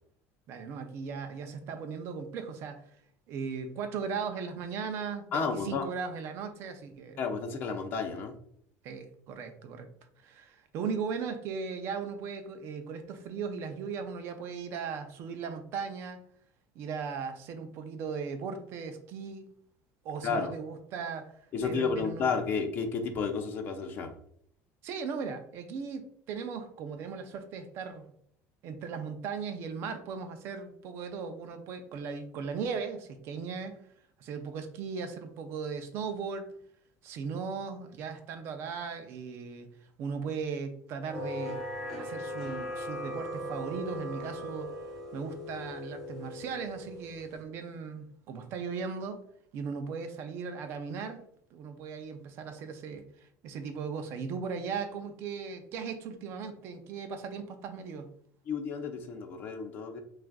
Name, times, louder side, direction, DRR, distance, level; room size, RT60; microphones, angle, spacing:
voice 1, 0.5-2.9 3.3-7.2 8.8-9.9 10.2-16.2 16.7-19.5 20.0-21.3 21.6-22.3 24.8-28.0 28.6-33.8 34.2-36.5 37.0-39.7 40.0-41.6 41.9-44.7 45.1-49.2 49.5-51.2 51.5-58.1, right 5 dB, 45° right, 7 dB, 0.5 m, -37 dB
voice 2, 5.3-5.8 7.2-8.4 20.2-20.5 21.5-24.1 58.5-60.0, left 5 dB, 35° left, 6 dB, 0.4 m, -31 dB
sound 1, 41.1-47.4, equal, 5° left, 1.1 m, -39 dB
5.8 x 2.4 x 2.3 m, 0.65 s
cardioid pair, 175°, 6 cm